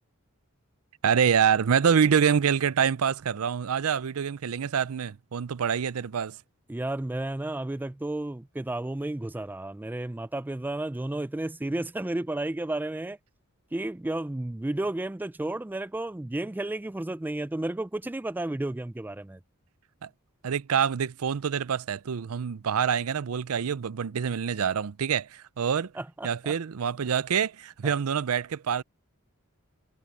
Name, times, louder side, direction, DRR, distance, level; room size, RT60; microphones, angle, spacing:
voice 1, 1.0-6.4 20.0-20.1 20.4-25.9 26.2-28.8, right 7 dB, 80° right, 0.5 m, -26 dB
voice 2, 6.7-13.2 13.7-19.4 26.0-26.5 27.8-27.9, right 1 dB, 10° right, 0.3 m, -32 dB
head